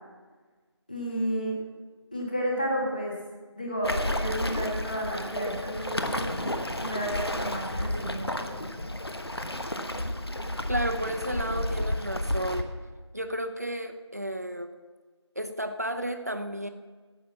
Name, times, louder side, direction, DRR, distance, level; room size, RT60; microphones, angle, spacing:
voice 1, 0.9-1.6 2.1-3.2 3.6-8.6, equal, 15° left, -3 dB, 1.5 m, -32 dB
Waves surf, 3.8-12.6, left 1 dB, 60° left, 1.1 m, -31 dB
voice 2, 10.7-12.7 13.1-14.7 15.4-16.7, equal, 35° right, 7 dB, 0.8 m, -32 dB
12.0 x 8.3 x 7.1 m, 1.4 s
figure-of-eight pair, 175°, 15 cm